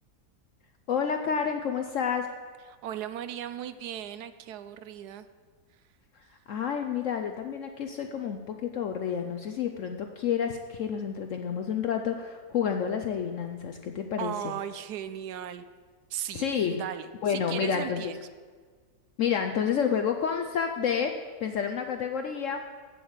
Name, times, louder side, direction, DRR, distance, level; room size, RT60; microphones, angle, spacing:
voice 1, 0.9-2.3 6.5-14.5 16.3-16.8 17.2-18.1 19.2-22.6, left 7 dB, 65° left, 5 dB, 0.8 m, -29 dB
voice 2, 2.8-5.3 14.2-15.6 16.1-18.2, right 10 dB, 80° right, 12 dB, 1.1 m, -37 dB
8.2 x 7.8 x 7.9 m, 1.5 s
omnidirectional pair, 1.7 m